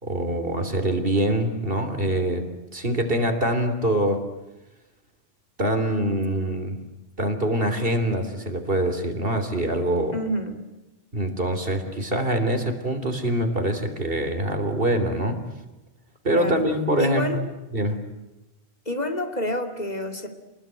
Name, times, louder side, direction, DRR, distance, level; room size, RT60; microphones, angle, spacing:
voice 1, 0.0-2.5 2.7-4.2 5.6-6.8 7.2-10.2 11.1-15.4 16.2-17.5 17.7-18.0, right 1 dB, 55° right, 7 dB, 3.6 m, -24 dB
voice 2, 10.1-10.6 16.3-16.6 17.0-17.4 18.9-20.3, left 1 dB, 40° left, 5 dB, 2.8 m, -28 dB
28.5 x 20.5 x 9.2 m, 1.0 s
omnidirectional pair, 1.1 m